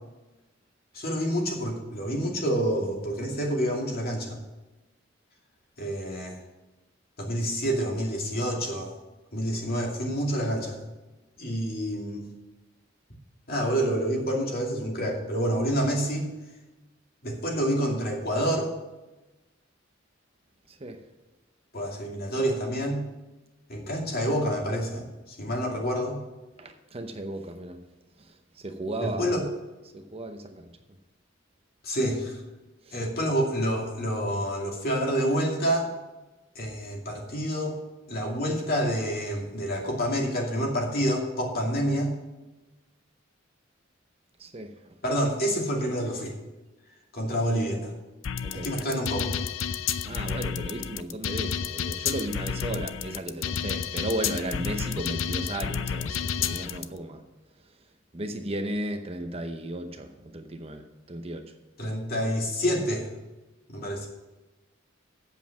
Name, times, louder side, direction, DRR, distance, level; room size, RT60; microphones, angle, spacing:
voice 1, 0.9-4.4 5.8-6.4 7.2-8.9 9.3-10.8 11.4-12.2 13.5-16.3 17.2-18.7 21.7-23.0 23.7-26.2 29.0-29.5 31.8-32.3 32.9-35.9 36.6-37.8 38.1-42.1 45.0-46.3 47.1-47.9 48.5-49.3 61.8-63.0 63.7-64.1, equal, 50° left, 0 dB, 2.5 m, -28 dB
voice 2, 26.6-27.8 28.6-29.3 30.1-30.6 44.4-44.7 48.4-48.7 50.0-57.2 58.1-60.8 61.1-61.4, right 1 dB, 30° right, 6 dB, 0.8 m, -34 dB
sound 1, 48.2-56.8, left 7 dB, 75° left, 0.5 m, -31 dB
8.3 x 7.2 x 7.2 m, 1.1 s
head